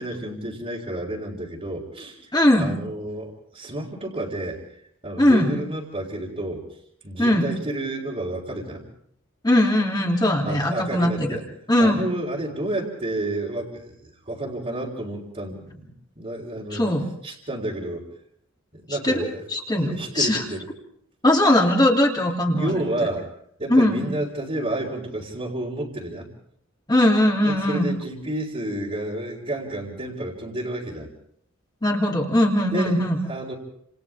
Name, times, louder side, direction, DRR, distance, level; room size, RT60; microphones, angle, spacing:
voice 1, 0.0-2.2 2.6-4.6 5.0-6.7 7.0-8.8 10.5-11.4 11.8-16.9 17.2-18.1 18.7-19.4 19.8-20.7 22.6-23.3 23.6-26.3 27.5-31.1 32.7-33.5, right 1 dB, 30° right, -5 dB, 3.8 m, -30 dB
voice 2, 2.3-2.8 5.2-5.5 7.2-7.4 9.4-11.4 11.7-12.0 16.7-17.0 18.9-19.2 19.5-20.4 21.2-22.7 23.7-24.0 26.9-27.9 31.8-33.2, left 1 dB, 20° left, -1 dB, 3.1 m, -20 dB
29.5 x 28.0 x 3.6 m, 0.67 s
head